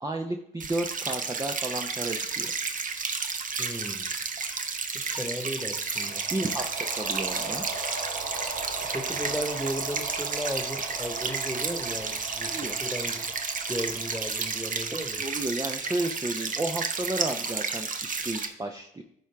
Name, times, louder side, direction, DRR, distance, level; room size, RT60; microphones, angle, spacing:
voice 1, 0.0-2.5 6.3-7.7 12.4-12.7 15.1-19.0, right 2 dB, 20° right, 3 dB, 0.8 m, -32 dB
sound 1, 0.6-18.5, right 5 dB, 45° right, 0.9 m, -32 dB
voice 2, 3.6-4.2 4.9-6.3 8.9-13.2 13.7-15.2, equal, ahead, 5 dB, 1.5 m, -35 dB
sound 2, 5.9-15.4, right 3 dB, 75° right, 1.8 m, -39 dB
13.5 x 4.5 x 3.5 m, 0.71 s
supercardioid pair, 55°, 19 cm